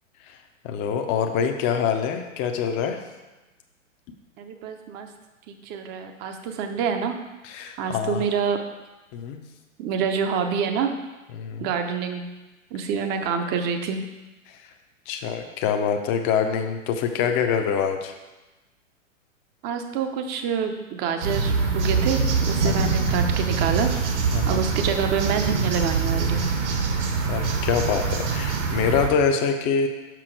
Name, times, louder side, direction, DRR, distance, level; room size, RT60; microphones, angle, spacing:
voice 1, 0.6-3.0 7.4-8.2 9.1-9.4 11.3-11.7 14.5-14.6 15.1-18.1 22.6-22.8 24.3-24.7 27.3-29.9, left 7 dB, 30° left, 4 dB, 0.6 m, -25 dB
voice 2, 4.4-5.1 5.5-7.2 7.8-8.6 9.8-10.9 11.6-12.2 12.7-14.0 19.6-22.2 22.5-23.9 24.5-26.5, right 6 dB, 25° right, 6 dB, 0.7 m, -27 dB
sound 1, 21.2-29.1, right 5 dB, 60° right, 1.4 m, -24 dB
6.1 x 6.0 x 4.5 m, 1.1 s
figure-of-eight pair, 110°, 40 cm